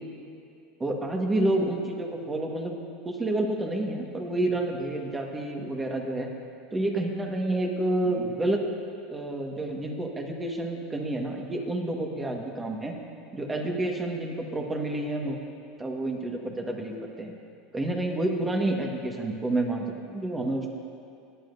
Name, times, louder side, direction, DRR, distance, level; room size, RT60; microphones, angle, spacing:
voice 1, 0.8-2.7 3.0-6.3 6.7-8.6 9.1-12.9 13.3-15.4 15.8-17.3 17.7-20.7, right 1 dB, 20° right, 2 dB, 1.6 m, -29 dB
17.5 x 10.5 x 2.7 m, 2.5 s
hypercardioid pair, 85°, 0 cm